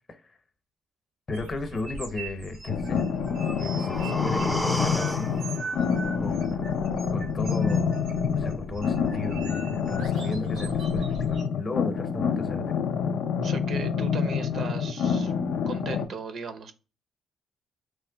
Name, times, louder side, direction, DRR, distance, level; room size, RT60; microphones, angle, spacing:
voice 1, 1.3-3.0 3.6-5.4 6.2-6.7 7.1-12.7, left 3 dB, 40° left, 0.7 m, -35 dB
sound 1, 1.3-11.4, right 3 dB, 90° right, 1.2 m, -40 dB
sound 2, 2.7-16.0, left 6 dB, 80° left, 0.4 m, -27 dB
sound 3, 3.2-7.2 7.5-7.6, equal, ahead, 0.4 m, -34 dB
voice 2, 13.4-15.3 15.7-16.7, right 5 dB, 60° right, 0.5 m, -37 dB
3.1 x 2.2 x 3.7 m
cardioid pair, 90°, 0 cm